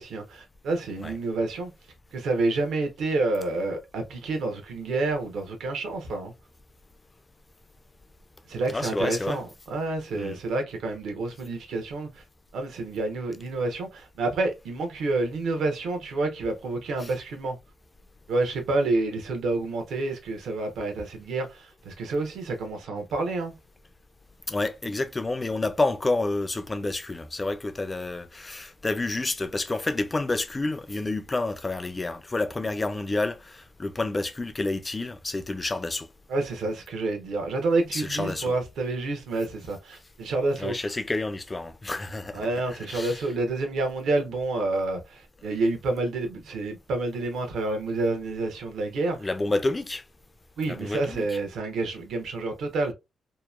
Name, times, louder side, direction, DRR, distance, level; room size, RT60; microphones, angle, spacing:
voice 1, 0.0-1.7 2.1-6.3 8.5-12.2 12.5-17.6 18.3-23.5 36.3-40.8 42.3-49.3 50.6-52.9, right 2 dB, 80° right, 0.8 m, -28 dB
voice 2, 8.7-9.4 10.1-10.4 17.0-17.1 24.5-36.1 37.9-38.5 40.6-42.5 42.9-43.2 49.2-50.0 50.7-51.3, left 2 dB, 20° left, 0.3 m, -29 dB
2.9 x 2.1 x 2.3 m
cardioid pair, 120°, 0 cm